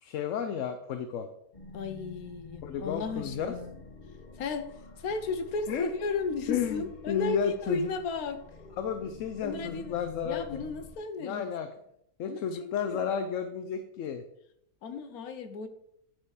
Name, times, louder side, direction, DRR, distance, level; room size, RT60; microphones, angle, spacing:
voice 1, 0.0-1.3 2.6-3.5 5.7-5.9 6.5-7.9 8.8-10.6 11.2-11.7 12.2-14.2, left 7 dB, 65° left, 8 dB, 0.9 m, -32 dB
sound 1, 1.5-10.9, left 2 dB, 35° left, 1.1 m, -48 dB
voice 2, 1.7-3.8 4.4-8.4 9.4-9.9 10.2-11.5 12.2-13.0 14.8-15.7, left 4 dB, 90° left, 9 dB, 1.3 m, -35 dB
9.7 x 4.5 x 4.9 m, 0.76 s
omnidirectional pair, 1.5 m